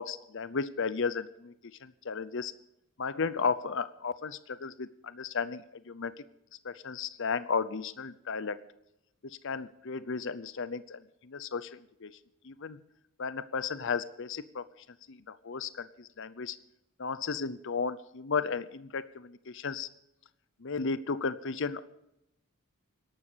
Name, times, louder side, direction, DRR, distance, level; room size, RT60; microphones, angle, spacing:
voice 1, 0.0-2.5 3.0-6.1 6.6-8.6 9.2-12.1 12.4-12.8 13.2-14.7 15.1-16.6 17.0-19.9 20.6-21.8, left 5 dB, 55° left, 15 dB, 0.7 m, -34 dB
18.0 x 12.0 x 5.1 m, 0.85 s
head